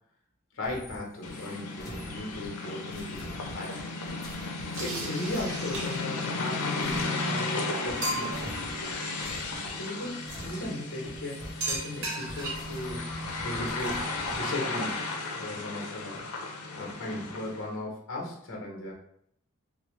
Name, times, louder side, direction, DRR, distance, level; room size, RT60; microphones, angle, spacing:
voice 1, 0.5-3.9 4.8-8.4 9.7-13.1 13.4-15.0 15.4-16.3 16.8-18.9, left 1 dB, 60° left, -2 dB, 0.9 m, -37 dB
sound 1, 0.6-7.6 7.9-14.4, equal, 15° left, 0.6 m, -46 dB
sound 2, 1.2-17.7, left 3 dB, 85° left, 0.6 m, -34 dB
sound 3, 4.7-6.2 7.1-7.2 7.6-7.7 8.0-8.6 10.3-10.6 11.6-12.8, right 2 dB, 70° right, 1.1 m, -35 dB
4.1 x 2.0 x 3.0 m, 0.70 s
head